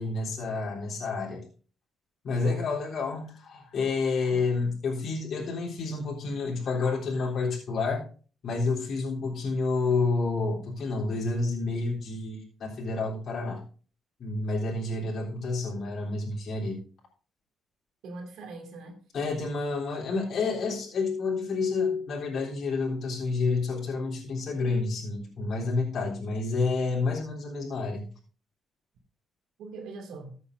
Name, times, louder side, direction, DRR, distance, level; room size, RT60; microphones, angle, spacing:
voice 1, 0.0-1.5 2.2-8.0 8.4-13.6 14.2-16.8 19.1-28.1, left 3 dB, 60° left, -4 dB, 3.6 m, -29 dB
voice 2, 18.0-19.0 29.6-30.3, right 4 dB, 80° right, 3 dB, 2.6 m, -41 dB
14.5 x 8.2 x 2.6 m, 0.38 s
cardioid pair, 90°, 0 cm